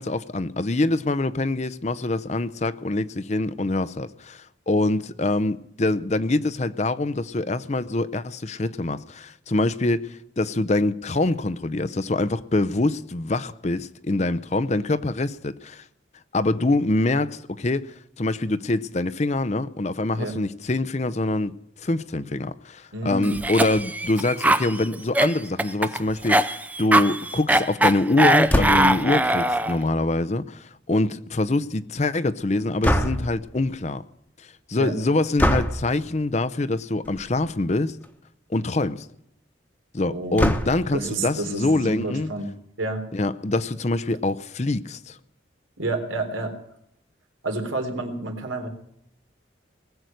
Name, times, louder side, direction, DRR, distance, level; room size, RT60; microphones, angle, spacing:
voice 1, 0.0-15.8 16.3-21.5 21.8-34.0 34.7-38.0 38.5-39.1 39.9-42.3 43.1-45.2, left 2 dB, 35° left, 0.6 m, -25 dB
voice 2, 22.9-23.4 34.8-34.9 40.1-40.4 40.9-42.5 42.8-43.1 45.8-46.5 47.4-48.7, right 2 dB, 90° right, 3.6 m, -29 dB
Cough, 23.2-29.8, right 1 dB, 10° right, 0.5 m, -21 dB
sound 1, 28.5-29.0 32.8-33.4 35.4-35.8 37.0-37.3 37.7-37.8 38.0-38.1 40.4-41.0, equal, 10° left, 1.1 m, -23 dB
20.0 x 8.0 x 9.1 m
head